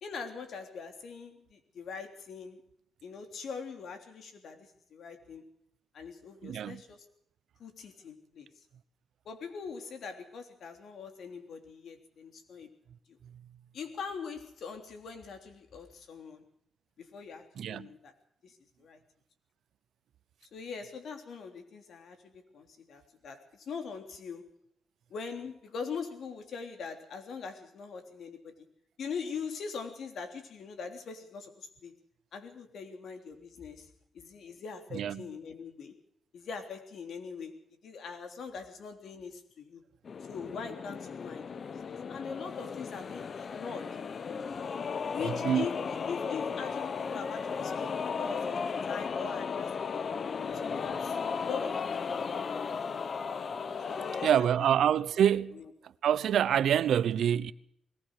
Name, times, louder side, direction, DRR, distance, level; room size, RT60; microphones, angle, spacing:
voice 1, 0.0-2.6 3.0-5.5 5.9-7.1 7.6-8.5 9.3-12.8 13.1-13.2 13.7-16.5 17.0-18.1 18.4-19.0 20.4-24.5 25.1-28.7 29.0-32.0 32.3-36.0 36.3-39.8 40.2-44.0 45.1-49.8 50.5-52.3 53.9-55.7, left 5 dB, 70° left, 3.4 m, -42 dB
voice 2, 6.4-6.8 17.6-17.9 34.9-35.2 45.4-45.7 54.2-55.6 56.0-57.5, right 9 dB, 80° right, 0.8 m, -26 dB
sound 1, 40.1-54.3, left 6 dB, 50° left, 0.9 m, -35 dB
21.0 x 19.0 x 6.5 m
cardioid pair, 110°, 0 cm